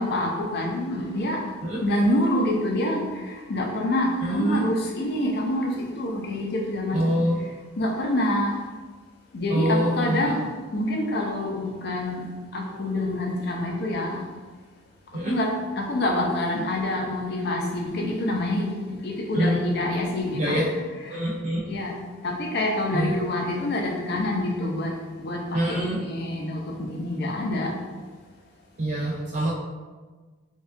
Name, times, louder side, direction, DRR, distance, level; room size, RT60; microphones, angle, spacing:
voice 1, 0.0-1.4 1.8-7.1 7.8-8.5 9.3-10.4 10.7-12.2 12.5-14.2 15.3-15.5 15.8-20.6 21.1-21.2 21.7-21.9 22.2-24.9 25.2-27.7, left 1 dB, 50° left, 0 dB, 0.5 m, -26 dB
voice 2, 4.2-4.6 6.9-7.4 9.5-10.3 15.1-15.3 19.3-19.7 20.3-21.6 22.9-23.2 25.5-26.0 28.8-29.5, right 1 dB, 35° right, -5 dB, 0.4 m, -25 dB
4.3 x 2.4 x 2.5 m, 1.4 s
head